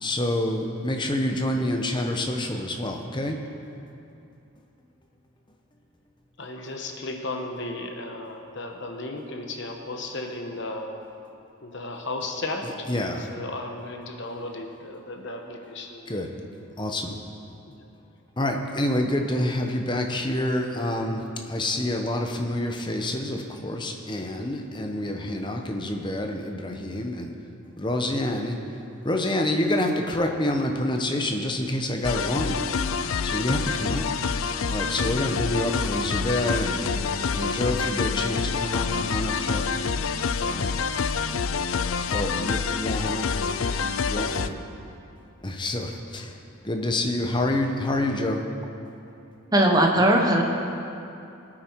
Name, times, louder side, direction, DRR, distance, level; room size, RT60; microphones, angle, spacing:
voice 1, 0.0-3.4 12.6-13.3 16.1-16.3 16.8-17.2 18.4-27.3 27.8-28.6 29.0-32.8 33.2-34.1 34.7-36.8 37.3-39.7 40.4-40.8 42.1-43.3 44.1-44.6 45.4-46.4 46.6-48.4, left 1 dB, 20° left, 3 dB, 0.9 m, -27 dB
voice 2, 6.4-10.9 11.6-16.2 17.7-17.8, left 2 dB, 55° left, 3 dB, 1.1 m, -35 dB
sound 1, 32.0-44.5, left 5 dB, 70° left, 0.5 m, -27 dB
voice 3, 49.5-50.4, right 1 dB, 15° right, 1 dB, 1.0 m, -18 dB
20.0 x 8.9 x 4.6 m, 2.7 s
head